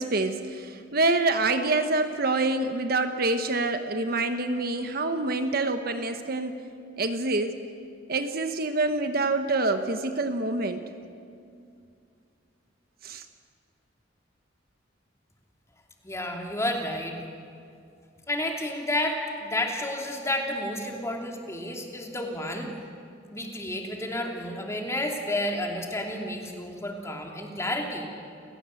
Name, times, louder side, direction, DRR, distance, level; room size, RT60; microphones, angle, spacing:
voice 1, 0.0-6.5 7.0-7.6 8.1-10.8 13.0-13.2, right 2 dB, 50° right, 7 dB, 1.2 m, -26 dB
voice 2, 16.0-17.2 18.3-22.7 23.3-28.1, left 1 dB, 15° left, 1 dB, 2.8 m, -31 dB
30.0 x 16.0 x 7.7 m, 2.4 s
head